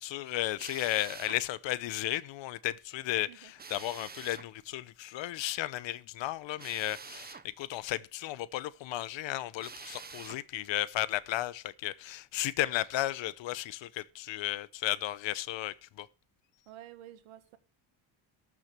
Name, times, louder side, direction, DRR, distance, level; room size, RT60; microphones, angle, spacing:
voice 1, 0.0-16.1, left 15 dB, 65° left, 0.8 m, -34 dB
Drill, 0.6-1.4 3.6-4.5 6.6-7.5 9.6-10.4, right 5 dB, 20° right, 0.9 m, -46 dB
voice 2, 16.7-17.6, right 12 dB, 80° right, 1.7 m, -50 dB
13.5 x 6.2 x 6.7 m
cardioid pair, 105°, 49 cm